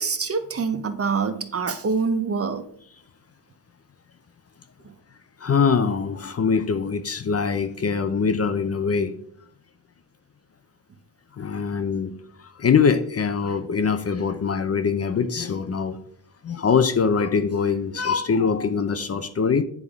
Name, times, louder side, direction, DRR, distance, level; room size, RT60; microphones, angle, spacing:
voice 1, 0.0-2.6, right 5 dB, 35° right, 9 dB, 0.5 m, -25 dB
voice 2, 5.4-9.1 11.3-12.1 12.4-16.0 16.4-19.6, left 5 dB, 35° left, 9 dB, 0.5 m, -23 dB
9.5 x 3.6 x 3.5 m, 0.65 s
cardioid pair, 105°, 44 cm